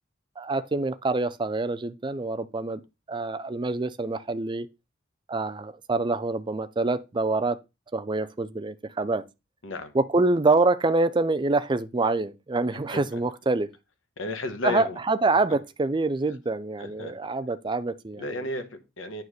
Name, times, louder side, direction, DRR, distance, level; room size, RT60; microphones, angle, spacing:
voice 1, 0.4-2.8 3.1-4.7 5.3-7.6 7.9-9.2 9.9-13.7 14.6-18.5, right 3 dB, 25° right, 0.5 m, -26 dB
voice 2, 14.2-15.0 16.8-17.1 18.2-19.2, left 2 dB, 80° left, 1.2 m, -33 dB
9.4 x 3.2 x 6.5 m
head